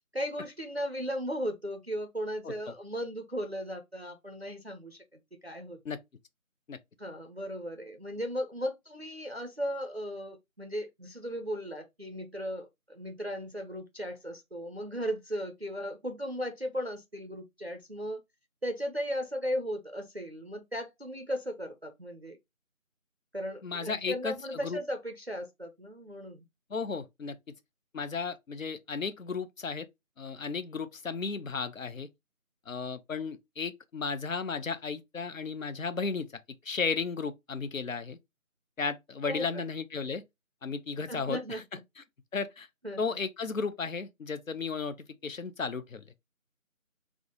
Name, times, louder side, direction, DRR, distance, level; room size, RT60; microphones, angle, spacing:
voice 1, 0.1-5.0 5.4-5.8 7.0-18.2 18.6-22.4 23.3-26.4 39.3-39.6 41.1-41.8 42.8-43.2, equal, 50° right, 0.5 m, -36 dB
voice 2, 23.6-24.8 26.7-27.4 27.9-29.9 30.2-32.1 32.7-36.3 36.6-38.2 38.8-40.2 40.6-41.6 42.0-42.1 42.3-42.7 43.0-45.0 45.2-46.1, left 5 dB, 70° left, 0.6 m, -34 dB
3.5 x 2.0 x 3.6 m
figure-of-eight pair, 170°, 42 cm